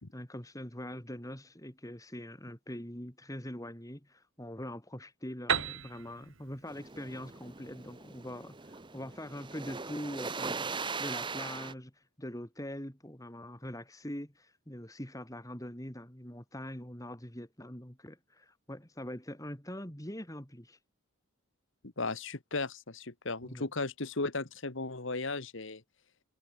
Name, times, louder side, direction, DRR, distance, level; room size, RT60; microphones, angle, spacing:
voice 1, 0.1-20.8 23.4-23.7, left 1 dB, 15° left, 2.9 m, -43 dB
Piano, 5.5-9.1, right 6 dB, 65° right, 3.6 m, -37 dB
sound 1, 6.7-11.7, right 4 dB, 20° right, 1.0 m, -40 dB
voice 2, 22.0-25.8, left 3 dB, 60° left, 1.6 m, -36 dB
head